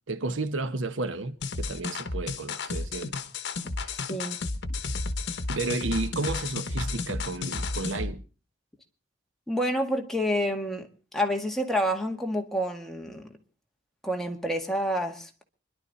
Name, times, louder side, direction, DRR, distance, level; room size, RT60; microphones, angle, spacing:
voice 1, 0.1-3.2 3.8-4.0 5.5-8.2, right 2 dB, 85° right, 1.1 m, -32 dB
sound 1, 1.4-8.1, left 3 dB, 65° left, 1.2 m, -32 dB
voice 2, 4.1-4.4 9.5-10.9 11.1-13.3 14.0-15.4, equal, ahead, 1.8 m, -28 dB
26.0 x 11.5 x 4.1 m
head